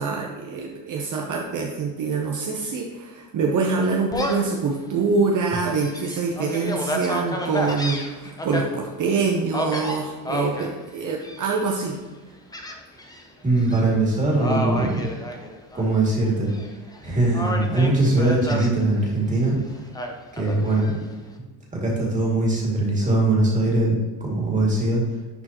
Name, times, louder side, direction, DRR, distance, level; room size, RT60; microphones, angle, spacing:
voice 1, 0.0-12.0, right 4 dB, 45° right, 1 dB, 0.8 m, -25 dB
Gull seagull, 4.1-4.5 5.1-5.2 5.7-8.6 9.5-10.7 11.2-11.7 12.5-13.2 13.6-13.8 14.4-15.9 16.2-17.0 17.3-18.7 19.9-21.0, equal, 10° left, 0.6 m, -30 dB
voice 2, 13.4-15.1 15.7-16.5 17.0-19.6 20.3-21.0 21.7-25.0, right 2 dB, 15° right, -4 dB, 2.3 m, -21 dB
10.5 x 4.6 x 2.9 m, 1.3 s
cardioid pair, 145°, 44 cm